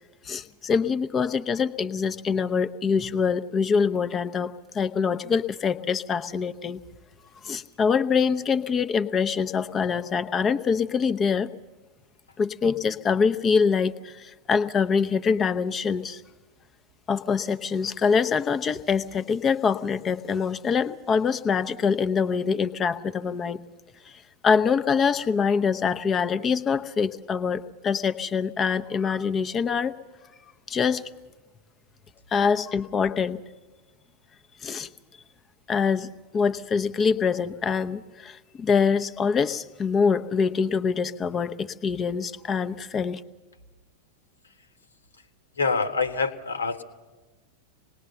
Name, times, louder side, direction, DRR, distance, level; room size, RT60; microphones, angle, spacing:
voice 1, 0.2-6.8 7.4-11.5 12.4-16.2 17.1-23.6 24.1-30.0 30.7-31.0 32.3-33.4 34.6-34.9 35.7-36.1 36.3-43.2, left 6 dB, 25° left, 11 dB, 0.9 m, -24 dB
voice 2, 45.5-46.8, left 4 dB, 75° left, 10 dB, 1.6 m, -26 dB
26.5 x 20.0 x 6.9 m, 1.2 s
figure-of-eight pair, 90°, 0 cm